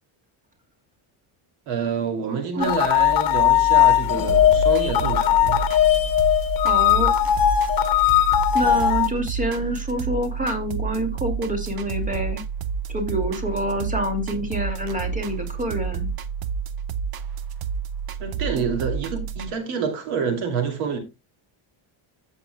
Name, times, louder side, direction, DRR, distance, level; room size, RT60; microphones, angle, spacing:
voice 1, 1.7-5.7 8.6-8.8 18.2-21.0, right 6 dB, 80° right, 2.8 m, -27 dB
sound 1, 2.6-9.1, left 11 dB, 45° left, 1.2 m, -19 dB
sound 2, 4.3-19.5, right 6 dB, 50° right, 0.8 m, -30 dB
voice 2, 6.6-7.1 8.5-12.4 12.9-16.1 18.6-18.7, right 1 dB, 15° right, 2.4 m, -27 dB
14.0 x 8.0 x 2.2 m
cardioid pair, 130°, 49 cm